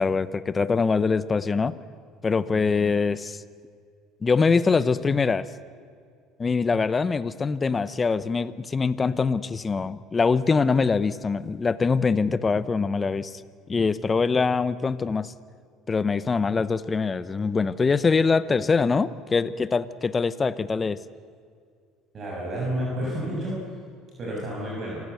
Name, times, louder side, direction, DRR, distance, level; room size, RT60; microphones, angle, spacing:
voice 1, 0.0-1.8 2.2-3.4 4.2-5.5 6.4-13.4 13.7-15.3 15.9-21.0, left 4 dB, 25° left, 16 dB, 0.9 m, -23 dB
voice 2, 22.1-23.6 24.2-25.0, right 1 dB, 40° right, -3 dB, 7.0 m, -30 dB
27.5 x 16.0 x 8.3 m, 2.2 s
supercardioid pair, 100°, 0 cm